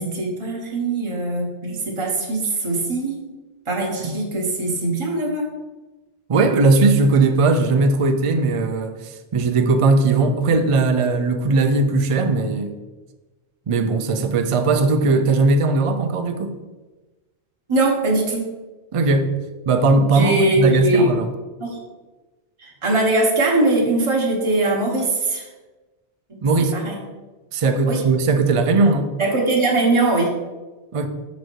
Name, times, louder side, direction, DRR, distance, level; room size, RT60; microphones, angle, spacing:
voice 1, 0.0-3.2 3.7-5.5 17.7-18.4 20.1-21.1 21.6-21.8 22.6-25.4 26.3-26.4 26.7-27.0 27.9-28.0 29.2-30.3, right 2 dB, 30° right, -3 dB, 1.1 m, -21 dB
voice 2, 6.3-12.7 13.7-16.6 18.9-19.3 19.7-21.3 26.4-26.7 27.5-29.1 30.9-31.1, right 3 dB, 45° right, 7 dB, 0.4 m, -18 dB
6.4 x 4.0 x 4.5 m, 1.2 s
omnidirectional pair, 1.2 m